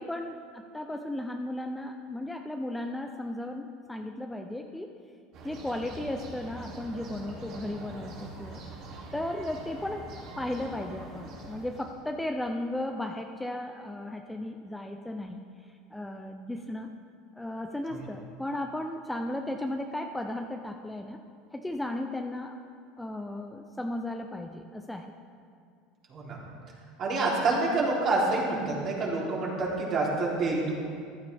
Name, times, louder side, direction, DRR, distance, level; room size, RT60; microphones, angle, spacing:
voice 1, 0.0-4.9 5.4-8.6 9.1-10.1 10.4-16.9 17.4-21.2 21.5-22.6 23.0-25.1, left 1 dB, 5° left, 4 dB, 0.6 m, -35 dB
sound 1, 5.3-12.0, right 2 dB, 55° right, 2.6 m, -44 dB
voice 2, 27.0-30.7, right 3 dB, 40° right, -4 dB, 3.4 m, -27 dB
14.5 x 12.0 x 3.5 m, 2.3 s
supercardioid pair, 125°, 0 cm